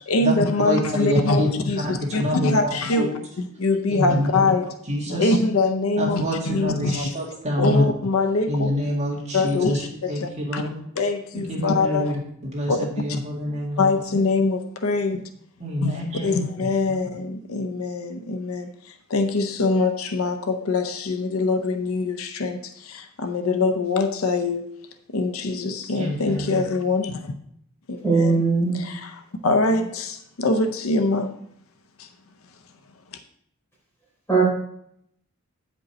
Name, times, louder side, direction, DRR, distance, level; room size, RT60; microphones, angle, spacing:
voice 1, 0.1-4.8 5.2-7.1 7.6-8.7 9.3-10.6 11.0-12.2 12.7-12.8 13.1-13.2 13.8-15.2 15.8-24.7 25.1-27.3 27.9-28.4 28.7-29.2 29.4-31.4 32.0-32.1 33.1-33.2, left 3 dB, 75° left, 7 dB, 0.7 m, -23 dB
voice 2, 0.6-3.1 3.9-4.3 4.9-5.4 6.0-7.8 8.5-9.8 10.1-10.7 11.3-12.2 12.5-13.9 15.6-16.4 16.9-17.0 25.9-26.6, equal, 30° right, -3 dB, 2.0 m, -27 dB
voice 3, 28.0-28.8 34.3-34.4, right 4 dB, 10° left, -5 dB, 3.7 m, -19 dB
8.8 x 5.2 x 4.1 m, 0.71 s
head